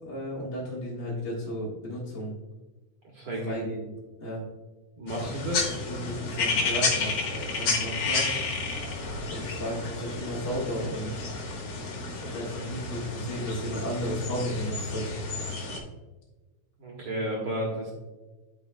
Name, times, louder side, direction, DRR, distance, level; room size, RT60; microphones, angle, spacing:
voice 1, 0.0-2.3 3.5-3.8 4.2-4.4 5.8-8.3 9.2-11.3 12.1-15.1, equal, 30° left, -5 dB, 1.5 m, -34 dB
voice 2, 3.1-3.6 5.0-5.7 16.8-17.9, equal, 55° right, -3 dB, 1.9 m, -32 dB
sound 1, 5.1-15.8, left 3 dB, 65° left, 2.3 m, -31 dB
13.5 x 4.9 x 2.2 m, 1.2 s
omnidirectional pair, 3.3 m